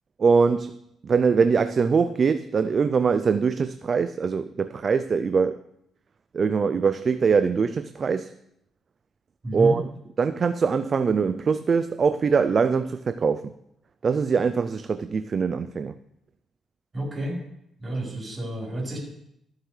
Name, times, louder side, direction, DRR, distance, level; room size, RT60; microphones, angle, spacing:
voice 1, 0.2-0.8 1.0-5.6 6.3-8.3 9.5-9.9 10.2-13.5 14.0-15.9, right 5 dB, 45° right, 11 dB, 0.4 m, -22 dB
voice 2, 9.4-9.7 16.9-17.4 17.8-19.0, right 1 dB, 25° right, -3 dB, 4.3 m, -30 dB
14.0 x 7.5 x 3.3 m, 0.78 s
cardioid pair, 90°, 0 cm